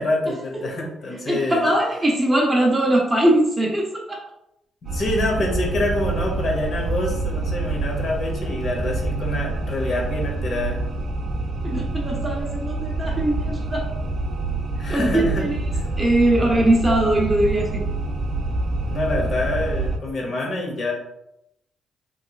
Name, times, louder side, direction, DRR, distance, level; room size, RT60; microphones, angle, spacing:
voice 1, 0.0-1.6 4.8-10.8 14.8-15.5 18.8-20.9, left 2 dB, 55° left, -1 dB, 1.0 m, -26 dB
voice 2, 1.3-4.2 11.6-13.9 14.9-15.6 16.0-17.8, right 1 dB, 15° right, -2 dB, 0.7 m, -21 dB
sound 1, 4.8-20.0, right 3 dB, 50° right, 0.6 m, -26 dB
3.1 x 2.9 x 2.4 m, 0.84 s
cardioid pair, 90°, 0 cm